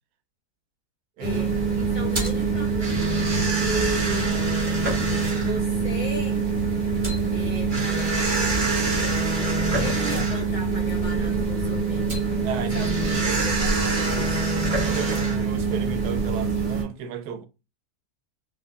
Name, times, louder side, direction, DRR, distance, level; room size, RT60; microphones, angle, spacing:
voice 1, 1.2-4.4 5.4-6.4 7.3-12.5 12.7-12.9 13.2-14.3, equal, 45° left, 0.7 m, -36 dB
sound 1, 1.2-16.8, right 4 dB, 35° right, 1.2 m, -24 dB
voice 2, 12.4-13.4 14.8-17.5, right 7 dB, 90° right, 1.1 m, -34 dB
4.9 x 2.1 x 2.3 m
omnidirectional pair, 1.6 m